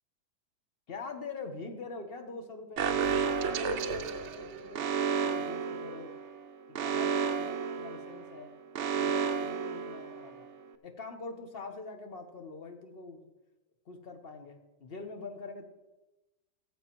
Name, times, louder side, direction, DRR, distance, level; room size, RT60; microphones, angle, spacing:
voice 1, 0.9-2.9 3.4-6.1 6.7-8.5 8.9-10.5 10.8-13.3 13.9-15.7, left 3 dB, 40° left, 5 dB, 1.0 m, -44 dB
Alarm, 2.8-10.5, right 6 dB, 85° right, 0.6 m, -32 dB
17.0 x 7.4 x 3.0 m, 1.0 s
omnidirectional pair, 1.8 m